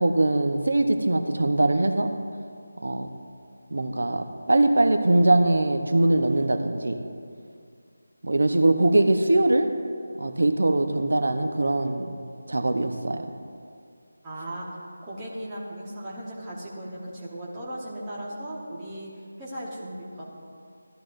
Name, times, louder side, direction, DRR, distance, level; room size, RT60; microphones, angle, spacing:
voice 1, 0.0-2.1 2.8-3.1 3.7-7.0 8.2-9.7 10.2-12.1 12.5-13.2, right 2 dB, 65° right, 7 dB, 0.9 m, -22 dB
voice 2, 14.2-14.7 15.0-20.2, right 1 dB, 10° right, -7 dB, 1.1 m, -37 dB
16.5 x 11.5 x 2.6 m, 2.3 s
figure-of-eight pair, 180°, 0 cm